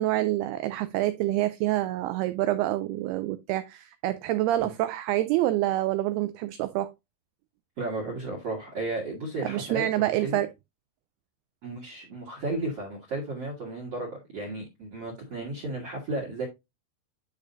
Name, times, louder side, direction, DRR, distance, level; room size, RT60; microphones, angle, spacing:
voice 1, 0.0-6.9 9.4-10.5, right 15 dB, 90° right, 2.2 m, -27 dB
voice 2, 7.8-10.4 11.6-16.5, right 2 dB, 50° right, 2.0 m, -34 dB
10.5 x 5.0 x 2.6 m
omnidirectional pair, 5.1 m